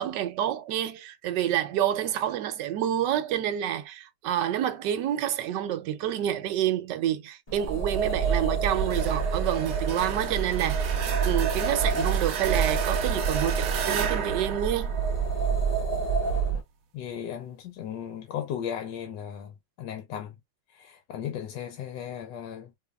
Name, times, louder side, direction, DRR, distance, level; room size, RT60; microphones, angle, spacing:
voice 1, 0.0-10.9 11.2-14.9, right 11 dB, 80° right, 1.2 m, -28 dB
sound 1, 7.5-16.6, right 5 dB, 35° left, 0.7 m, -27 dB
sound 2, 8.9-15.6, right 8 dB, 60° right, 1.0 m, -35 dB
voice 2, 16.9-20.4 20.7-22.8, left 9 dB, 75° left, 1.3 m, -36 dB
4.7 x 2.6 x 2.3 m
omnidirectional pair, 1.9 m